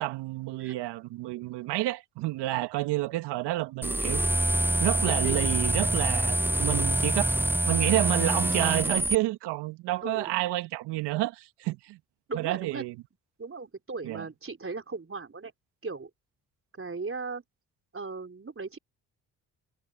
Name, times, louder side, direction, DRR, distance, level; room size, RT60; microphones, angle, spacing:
voice 1, 0.0-4.2 4.8-7.4 7.7-12.0 12.3-13.0 14.0-14.3, right 18 dB, 80° right, 1.7 m, -29 dB
sound 1, 3.8-9.1, right 1 dB, 5° right, 0.6 m, -26 dB
voice 2, 5.1-5.6 10.0-10.3 12.3-12.8 13.4-15.5 15.8-16.1 16.8-17.4 17.9-18.8, right 4 dB, 30° right, 4.2 m, -37 dB
hypercardioid pair, 45°, 41 cm